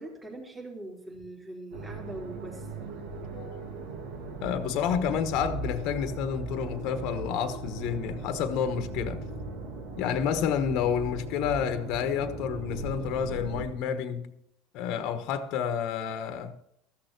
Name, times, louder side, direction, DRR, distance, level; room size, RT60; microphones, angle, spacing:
voice 1, 0.0-2.7 14.9-15.2, right 1 dB, 20° right, 3.5 m, -42 dB
sound 1, 1.7-13.7, right 2 dB, 75° right, 2.5 m, -38 dB
voice 2, 3.3-3.7 4.4-9.2 10.0-14.4 14.7-16.6, left 8 dB, 60° left, 1.1 m, -30 dB
14.0 x 6.6 x 8.0 m
supercardioid pair, 100°, 0 cm